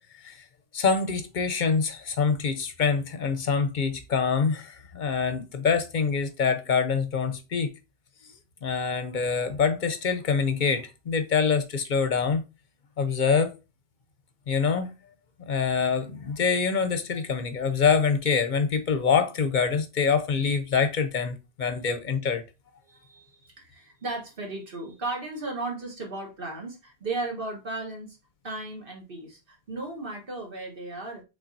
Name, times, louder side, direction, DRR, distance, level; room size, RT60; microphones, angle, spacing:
voice 1, 0.7-7.7 8.6-12.4 13.0-13.5 14.5-14.9 15.5-22.4, left 5 dB, 55° left, 0.7 m, -25 dB
voice 2, 22.9-28.2 28.4-31.2, right 2 dB, 60° right, 1.4 m, -35 dB
5.7 x 3.6 x 2.6 m
omnidirectional pair, 1.1 m